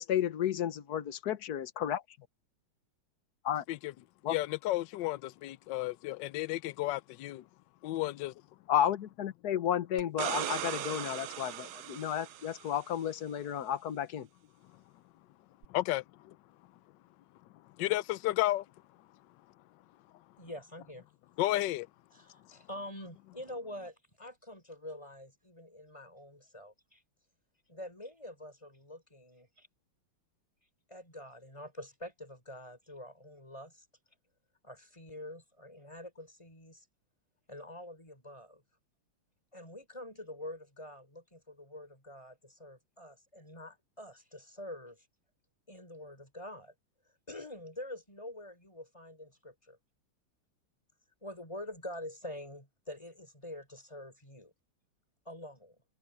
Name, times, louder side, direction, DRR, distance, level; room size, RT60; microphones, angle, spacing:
voice 1, 0.0-2.0 3.4-3.6 4.2-4.4 8.7-14.3, left 10 dB, 50° left, 1.5 m, -32 dB
voice 2, 4.3-7.4 7.8-8.3 15.7-16.3 17.8-18.6 21.4-21.9, left 16 dB, 70° left, 1.2 m, -32 dB
sound 1, 10.0-12.8 15.6-15.7, right 12 dB, 70° right, 1.6 m, -38 dB
voice 3, 20.4-21.1 22.1-27.0 27.7-29.7 30.9-33.8 34.6-36.8 37.5-38.6 39.5-45.1 45.7-46.7 47.3-49.8 51.2-54.5 55.2-55.8, left 1 dB, 15° left, 4.8 m, -46 dB
omnidirectional pair, 2.4 m